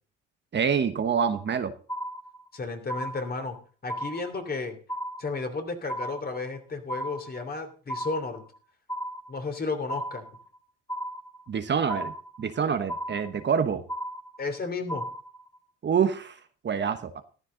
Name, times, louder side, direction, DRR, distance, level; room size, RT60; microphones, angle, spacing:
voice 1, 0.5-1.7 11.5-13.8 15.8-17.2, right 7 dB, 40° right, 9 dB, 1.2 m, -26 dB
sound 1, 1.3-1.6 1.9-2.6 2.9-3.6 3.9-4.6 4.9-5.6 5.9-6.6 6.9-7.6 7.9-8.6 8.9-9.6 9.9-10.6 10.9-11.6 11.9-12.6 12.9-13.6 13.9-14.6 14.9-15.6, right 1 dB, 10° left, 2.6 m, -36 dB
voice 2, 2.5-3.6 3.8-4.8 5.2-8.4 9.3-10.2 14.4-15.0, left 3 dB, 30° left, 7 dB, 3.1 m, -33 dB
14.0 x 11.5 x 3.9 m, 0.40 s
supercardioid pair, 85°, 29 cm